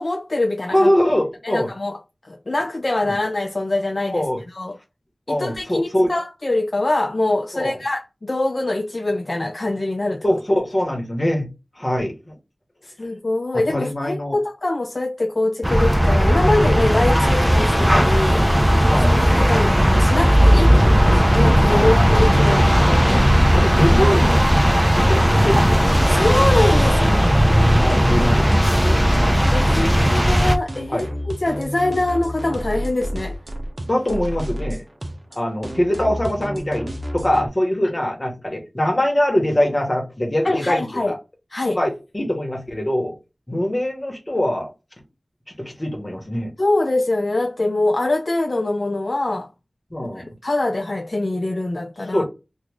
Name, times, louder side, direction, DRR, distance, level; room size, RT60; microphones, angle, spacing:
voice 1, 0.0-0.9 1.4-2.0 2.3-4.8 5.3-10.2 12.8-18.4 19.1-23.0 23.5-23.7 25.0-25.1 26.0-27.4 29.5-31.1 31.4-33.3 40.4-41.1 41.5-41.8 46.6-49.5 50.2-52.2, left 2 dB, 55° left, 0.4 m, -23 dB
voice 2, 0.7-1.7 3.0-3.1 4.1-4.4 5.3-6.1 7.5-7.8 10.2-11.5 11.8-12.4 13.5-14.4 18.8-19.2 20.7-20.8 21.7-21.9 23.0-23.2 23.5-24.5 24.9-25.8 27.8-29.6 30.9-31.1 33.8-34.8 35.3-41.1 41.7-43.1 43.5-44.7 45.5-46.5 49.9-50.3 52.1-52.2, left 1 dB, 35° left, 1.2 m, -23 dB
sound 1, 15.6-30.6, equal, 10° right, 0.6 m, -16 dB
sound 2, 27.6-37.5, equal, 50° right, 0.7 m, -30 dB
3.0 x 2.4 x 3.5 m
wide cardioid pair, 50°, 0 cm